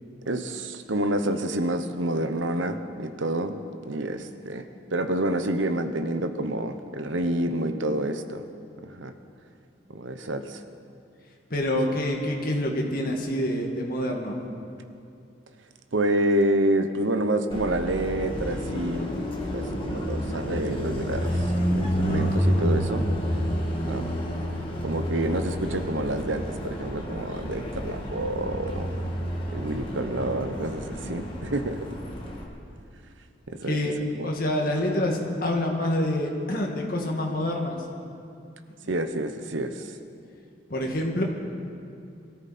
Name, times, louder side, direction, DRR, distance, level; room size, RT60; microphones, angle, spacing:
voice 1, 0.2-4.7 4.9-8.4 8.8-9.1 9.9-10.6 15.9-19.2 19.5-23.0 23.8-24.1 24.8-28.9 29.5-31.8 33.5-33.8 34.2-34.3 38.9-40.0, right 1 dB, 80° right, 9 dB, 1.0 m, -28 dB
voice 2, 11.5-14.4 33.6-37.8 40.7-41.2, left 1 dB, 50° left, 0 dB, 2.0 m, -27 dB
Car passing by, 17.5-32.4, equal, 25° left, 1.9 m, -29 dB
23.0 x 14.0 x 4.3 m, 2.6 s
head